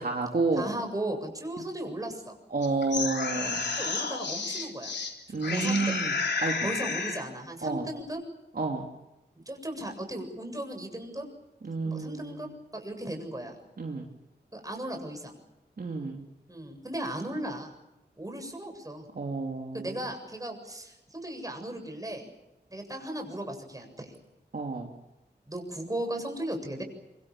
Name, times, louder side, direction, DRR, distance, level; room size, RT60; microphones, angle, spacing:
voice 1, 0.0-0.7 2.5-3.7 5.3-6.1 6.4-6.7 7.6-7.9 8.5-8.9 11.6-12.4 13.8-14.1 15.8-16.2 19.1-20.0 24.5-24.9, right 3 dB, 60° right, 1 dB, 3.0 m, -30 dB
voice 2, 0.6-2.4 3.7-4.9 5.3-6.0 6.6-8.2 9.5-11.2 11.8-13.6 14.5-15.3 16.5-17.7 18.2-19.1 19.7-22.3 22.7-24.1 25.5-26.8, right 1 dB, 20° right, 4 dB, 7.6 m, -36 dB
sound 1, 2.6-5.1 5.4-7.3, left 4 dB, 85° left, 3.9 m, -31 dB
26.0 x 26.0 x 7.3 m, 0.95 s
wide cardioid pair, 95°, 18 cm